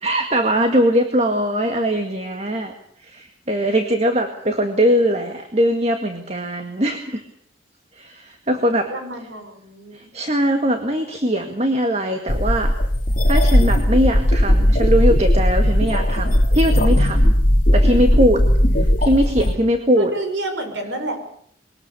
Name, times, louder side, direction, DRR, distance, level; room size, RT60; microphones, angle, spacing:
voice 1, 0.0-2.7 3.0-7.2 8.0-8.9 9.9-12.7 13.3-17.3 17.7-18.4 18.8-20.1, equal, 35° right, 5 dB, 1.9 m, -21 dB
voice 2, 8.9-10.1 20.0-21.2, right 1 dB, 80° right, 5 dB, 5.9 m, -29 dB
sound 1, 12.3-19.5, equal, 45° left, 2.5 m, -17 dB
23.0 x 19.0 x 7.0 m, 0.67 s
head